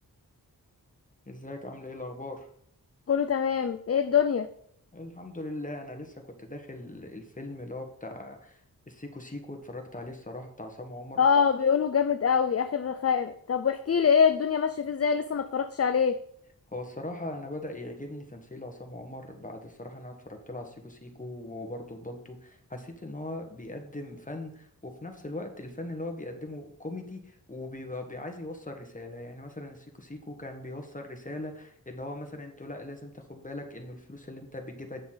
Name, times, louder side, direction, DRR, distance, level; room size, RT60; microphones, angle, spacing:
voice 1, 1.3-2.5 4.9-8.6 8.9-11.2 16.7-35.0, left 1 dB, 20° left, 3 dB, 1.6 m, -40 dB
voice 2, 3.1-4.5 11.2-16.2, left 7 dB, 40° left, 10 dB, 0.5 m, -24 dB
8.3 x 7.1 x 4.0 m, 0.66 s
wide cardioid pair, 60°, 37 cm